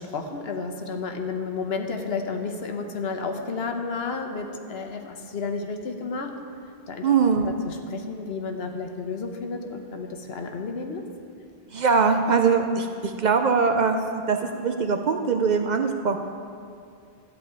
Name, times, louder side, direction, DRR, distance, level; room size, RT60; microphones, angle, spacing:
voice 1, 0.0-6.3 6.9-7.1 7.4-11.0, left 4 dB, 75° left, 4 dB, 1.1 m, -32 dB
voice 2, 7.0-7.5 11.7-16.2, right 5 dB, 55° right, 5 dB, 0.6 m, -22 dB
12.5 x 4.2 x 8.1 m, 2.4 s
omnidirectional pair, 1.1 m